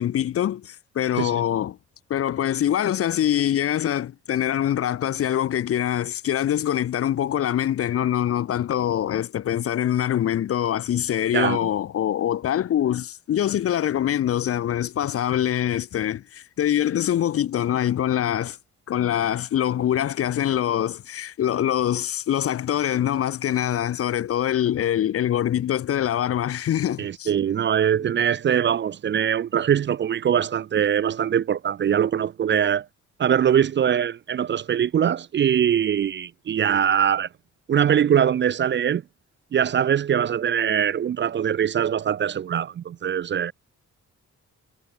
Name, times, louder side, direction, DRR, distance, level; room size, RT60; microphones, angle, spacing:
voice 1, 0.0-1.8 2.1-18.6 18.9-27.3, left 11 dB, 50° left, 0.5 m, -24 dB
voice 2, 27.0-32.9 33.2-37.3 37.7-39.0 39.5-43.5, right 9 dB, 40° right, 0.4 m, -22 dB
wide cardioid pair, 135°, 30 cm